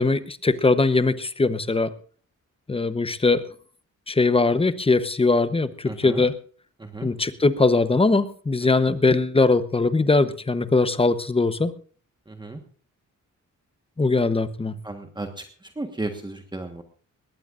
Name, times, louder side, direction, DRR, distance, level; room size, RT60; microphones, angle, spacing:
voice 1, 0.0-1.9 2.7-3.5 4.1-6.3 7.0-11.7 14.0-14.7, left 3 dB, 20° left, 13 dB, 0.9 m, -21 dB
voice 2, 5.9-6.2 6.8-7.1 8.8-8.9 12.3-12.6 14.8-15.4 15.8-16.8, right 2 dB, 15° right, 5 dB, 1.4 m, -34 dB
20.5 x 18.0 x 2.5 m, 0.43 s
wide cardioid pair, 120°, 31 cm